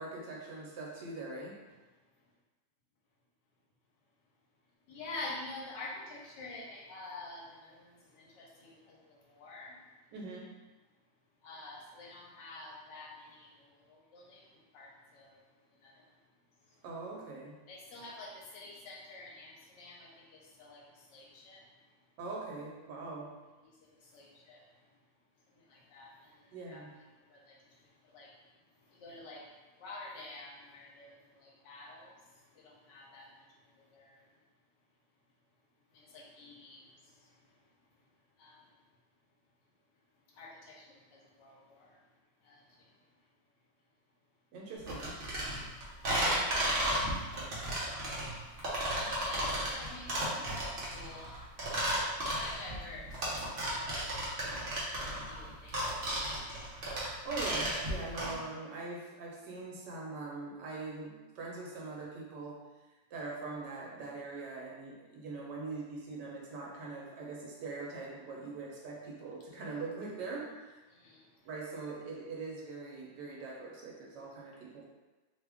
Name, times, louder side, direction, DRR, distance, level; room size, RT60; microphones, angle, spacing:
voice 1, 0.0-1.6 10.1-10.5 16.8-17.6 22.2-23.3 26.5-26.9 44.5-45.2 46.1-46.5 57.2-62.6 63.1-70.7 71.4-74.8, right 3 dB, 75° right, -3 dB, 1.3 m, -42 dB
voice 2, 4.9-9.8 11.4-14.4 14.7-15.4 15.8-16.0 17.7-21.6 24.0-24.6 25.7-26.8 27.3-27.6 28.1-28.3 28.9-29.5 29.8-32.2 32.6-33.4 33.9-34.2 35.9-36.9 38.4-38.6 40.3-41.9 42.4-42.6 49.2-50.6 50.9-51.4 52.4-53.3 53.6-54.5 55.3-55.8 70.9-71.2, left 2 dB, 85° left, -2 dB, 1.4 m, -48 dB
sound 1, 44.9-58.3, right 1 dB, 50° right, 0.7 m, -34 dB
3.1 x 2.3 x 3.4 m, 1.2 s
omnidirectional pair, 1.9 m